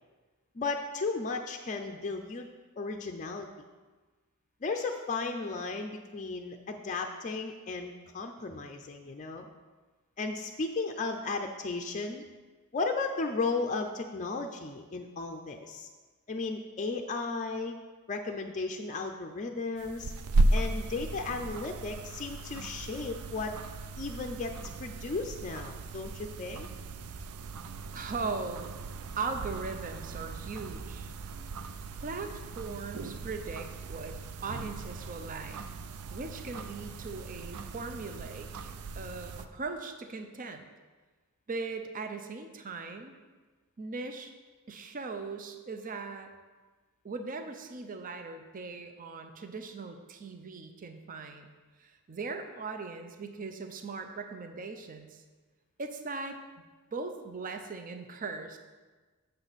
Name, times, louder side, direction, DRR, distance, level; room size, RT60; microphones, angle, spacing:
voice 1, 0.5-2.5 2.8-3.5 4.6-9.5 10.2-12.2 12.7-15.9 16.3-17.8 18.1-20.1 20.5-23.6 24.0-24.5 24.8-26.7, left 3 dB, 35° left, 4 dB, 0.5 m, -35 dB
sound 1, 19.8-39.5, right 2 dB, 85° right, 0.5 m, -36 dB
voice 2, 27.9-28.7 29.2-31.1 32.0-34.2 34.4-35.6 36.1-40.7 41.5-43.1 43.8-44.3 44.7-46.3 47.0-51.5 51.8-55.2 55.8-56.4 56.9-58.6, right 4 dB, 40° right, 6 dB, 0.6 m, -39 dB
7.9 x 6.8 x 4.1 m, 1.3 s
head